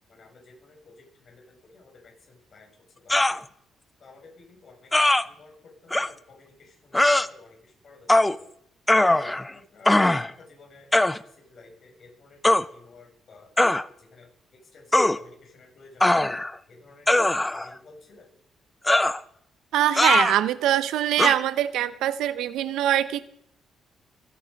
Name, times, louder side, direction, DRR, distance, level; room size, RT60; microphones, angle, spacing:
voice 1, 0.1-2.7 3.0-3.4 4.0-8.5 9.1-13.5 14.0-14.3 14.7-16.2 16.7-18.3, left 3 dB, 50° left, 0 dB, 7.1 m, -52 dB
sound 1, 3.1-3.4 4.9-5.2 5.9-6.1 6.9-7.3 8.1-8.4 8.9-9.5 9.8-10.3 10.9-11.2 12.4-12.6 13.6-13.8 14.9-15.2 16.0-16.5 17.1-17.7 18.9-19.2 20.0-20.4 21.2-21.3, left 1 dB, 10° left, 0.6 m, -20 dB
voice 2, 19.7-23.2, right 12 dB, 85° right, 15 dB, 0.8 m, -23 dB
24.5 x 9.8 x 5.3 m, 0.69 s
cardioid pair, 90°, 0 cm